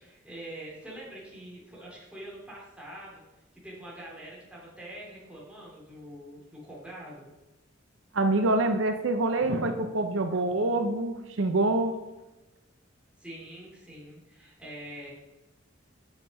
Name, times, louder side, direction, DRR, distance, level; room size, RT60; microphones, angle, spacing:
voice 1, 0.0-3.2 3.6-7.3 13.2-15.1, right 1 dB, 5° right, -5 dB, 3.0 m, -44 dB
voice 2, 8.1-11.9, right 2 dB, 70° right, 7 dB, 0.7 m, -26 dB
8.0 x 6.7 x 5.6 m, 1.1 s
head